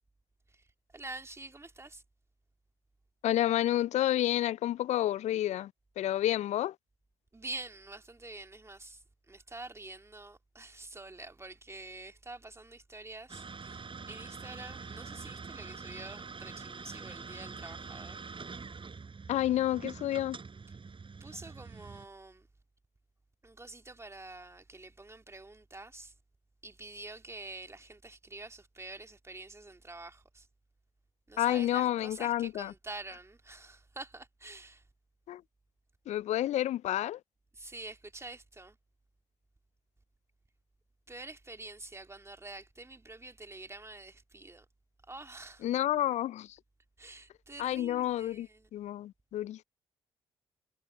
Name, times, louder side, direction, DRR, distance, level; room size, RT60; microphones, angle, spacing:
voice 1, 0.5-2.0 7.3-18.2 21.2-22.5 23.4-26.1 26.6-30.5 31.3-34.8 37.5-38.8 41.1-44.7 45.1-45.7 47.0-48.7, right 2 dB, 20° right, 2.4 m, -47 dB
voice 2, 3.2-6.8 19.3-20.4 31.4-32.7 35.3-35.4 36.1-37.2 45.6-46.6 47.6-49.6, left 13 dB, 55° left, 0.4 m, -30 dB
sound 1, 13.3-22.1, right 4 dB, 35° right, 6.4 m, -45 dB
figure-of-eight pair, 40°, 14 cm